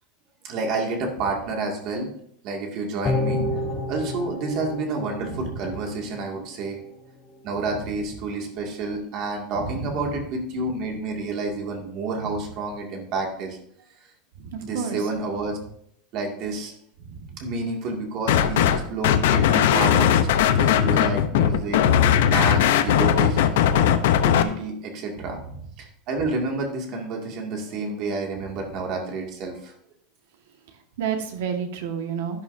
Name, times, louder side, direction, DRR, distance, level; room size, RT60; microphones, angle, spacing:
voice 1, 0.4-2.1 2.4-3.4 3.9-6.8 7.4-13.6 14.6-15.6 16.1-16.7 17.4-20.3 20.6-21.8 22.3-23.6 24.2-25.4 25.8-29.7, right 3 dB, 35° right, 1 dB, 2.3 m, -29 dB
sound 1, 3.0-6.4 6.7-6.8, left 2 dB, 15° left, 1.1 m, -30 dB
voice 2, 3.2-3.9 5.3-5.7 9.6-10.0 14.4-15.1 17.0-17.4 25.2-25.4 31.0-32.4, right 6 dB, 70° right, 4 dB, 1.8 m, -31 dB
sound 2, 18.3-18.8 19.0-24.4, left 9 dB, 70° left, 0.8 m, -18 dB
11.5 x 11.5 x 2.8 m, 0.67 s
supercardioid pair, 175°, 0 cm